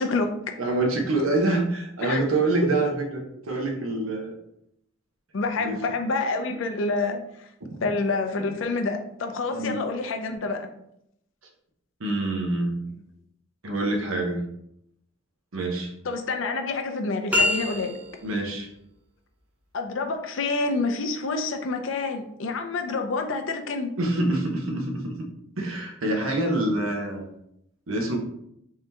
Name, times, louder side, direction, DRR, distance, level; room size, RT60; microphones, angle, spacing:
voice 1, 0.0-0.5 2.0-2.2 2.6-2.7 5.3-7.2 7.8-10.7 16.0-18.0 19.7-23.9, left 3 dB, 65° left, 5 dB, 0.5 m, -27 dB
voice 2, 0.6-4.4 5.6-5.8 9.5-9.7 12.0-12.8 13.6-14.4 15.5-15.9 18.2-18.7 24.0-25.2 25.6-27.3 27.9-28.2, right 2 dB, 85° right, 2 dB, 0.8 m, -26 dB
sound 1, 17.3-18.4, left 2 dB, 5° right, 0.7 m, -25 dB
3.6 x 2.8 x 3.4 m, 0.76 s
head